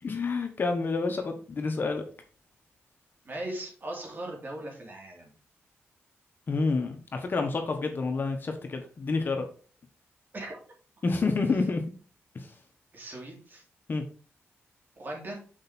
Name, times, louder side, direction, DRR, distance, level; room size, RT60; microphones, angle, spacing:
voice 1, 0.0-2.0 6.5-9.4 11.0-11.8 12.3-12.5 13.9-14.0, left 3 dB, 45° left, 4 dB, 1.3 m, -28 dB
voice 2, 3.2-5.3 10.3-10.6 12.9-13.6 15.0-15.4, right 1 dB, 45° right, 0 dB, 2.6 m, -38 dB
6.5 x 4.7 x 4.3 m, 0.39 s
cardioid pair, 100°, 5 cm